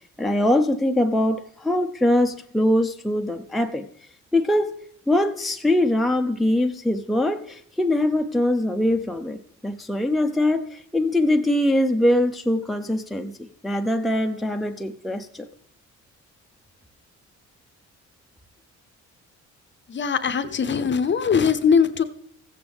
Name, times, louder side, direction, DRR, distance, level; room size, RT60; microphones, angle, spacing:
voice 1, 0.2-3.8 4.3-4.7 5.1-9.4 9.6-15.4, left 1 dB, ahead, 5 dB, 0.5 m, -22 dB
voice 2, 19.9-22.0, left 6 dB, 40° left, 11 dB, 0.7 m, -21 dB
15.0 x 7.8 x 3.5 m, 0.67 s
cardioid pair, 90°, 30 cm